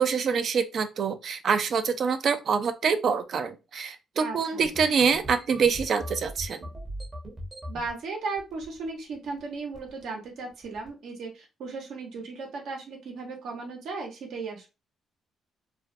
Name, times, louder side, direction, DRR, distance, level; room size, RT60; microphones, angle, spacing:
voice 1, 0.0-6.7, right 6 dB, 55° right, 0.4 m, -25 dB
voice 2, 4.2-4.6 7.7-14.7, right 4 dB, 75° right, 0.8 m, -36 dB
sound 1, 4.6-7.9 8.4-8.9 9.1-9.4 9.7-10.0 10.6-10.9, equal, 20° right, 0.7 m, -40 dB
2.5 x 2.1 x 2.5 m
cardioid pair, 90°, 0 cm